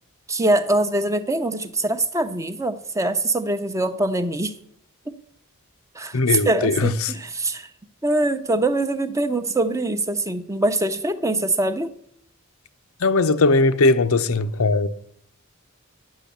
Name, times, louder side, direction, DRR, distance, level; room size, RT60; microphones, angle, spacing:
voice 1, 0.3-4.5 5.1-5.2 5.9-7.7 8.0-11.9, right 2 dB, 15° right, 0.6 m, -23 dB
voice 2, 6.1-7.1 13.0-14.9, left 3 dB, 80° left, 0.7 m, -19 dB
10.5 x 6.2 x 8.4 m
head